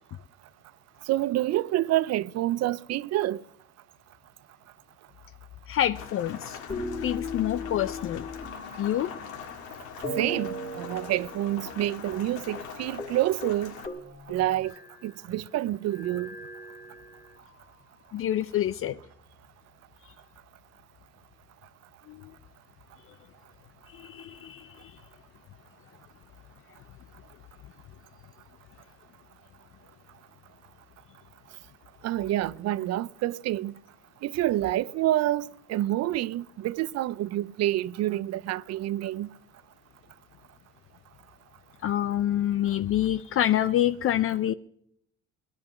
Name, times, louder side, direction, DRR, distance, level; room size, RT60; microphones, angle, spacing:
voice 1, 1.1-3.4 10.2-13.8 14.3-14.7 15.0-16.3 32.0-33.7 34.2-39.3, right 14 dB, 60° right, 0.5 m, -28 dB
voice 2, 5.7-6.6 7.0-8.2 8.8-9.1 18.1-19.0 20.0-20.1 22.1-22.3 23.9-25.0 41.8-44.5, left 11 dB, 45° left, 0.5 m, -27 dB
Rain, 5.9-13.9, left 8 dB, 80° left, 1.9 m, -43 dB
sound 1, 6.7-9.6 10.0-11.9 12.1-12.2 12.5-12.7 13.0-13.2 13.4-15.1 15.9-17.5 18.2-19.1, left 1 dB, 30° left, 2.6 m, -38 dB
19.0 x 11.0 x 6.1 m
cardioid pair, 120°, 30 cm